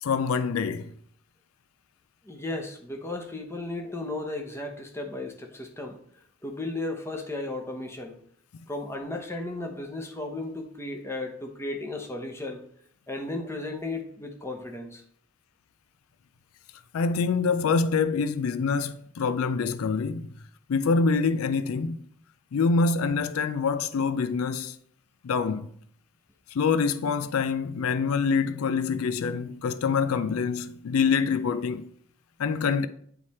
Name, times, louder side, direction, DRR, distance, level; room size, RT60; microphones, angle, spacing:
voice 1, 0.0-0.9 16.9-20.3 20.7-22.0 22.5-24.8 25.2-25.7 26.5-31.9 32.4-32.9, left 5 dB, 85° left, 0.4 m, -25 dB
voice 2, 2.2-6.0 6.4-8.2 8.7-12.6 13.1-15.0, left 2 dB, 10° left, 0.8 m, -35 dB
9.0 x 3.2 x 4.2 m
head